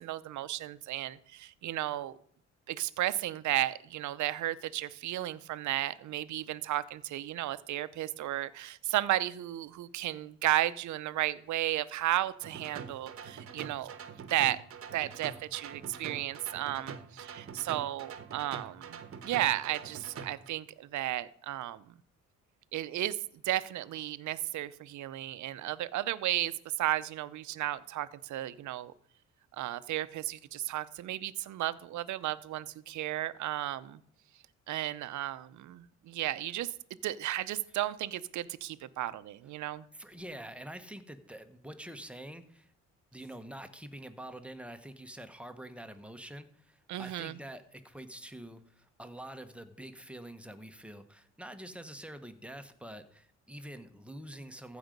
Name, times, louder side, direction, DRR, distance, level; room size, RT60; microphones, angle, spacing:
voice 1, 0.0-2.2 2.7-14.0 14.3-14.6 14.9-21.9 22.7-23.2 23.4-26.5 26.8-28.9 29.6-34.0 34.7-36.7 37.0-39.8 46.9-47.4, right 14 dB, 75° right, 16 dB, 0.6 m, -34 dB
sound 1, 12.4-20.5, right 6 dB, 50° right, 1.1 m, -45 dB
voice 2, 39.9-42.7 43.1-54.8, right 1 dB, 5° right, 8 dB, 1.1 m, -46 dB
14.5 x 5.1 x 5.2 m, 0.63 s
cardioid pair, 90°, 30 cm